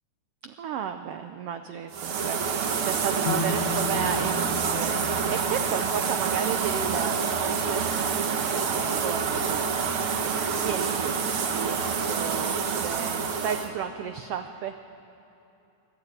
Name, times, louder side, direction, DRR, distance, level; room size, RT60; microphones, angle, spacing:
voice 1, 0.4-10.0 10.2-14.9, right 8 dB, 85° right, 8 dB, 1.3 m, -34 dB
sound 1, 1.9-13.7, right 6 dB, 55° right, 1.7 m, -27 dB
sound 2, 3.3-7.2, left 4 dB, 80° left, 2.2 m, -35 dB
27.0 x 12.0 x 9.0 m, 2.9 s
omnidirectional pair, 3.5 m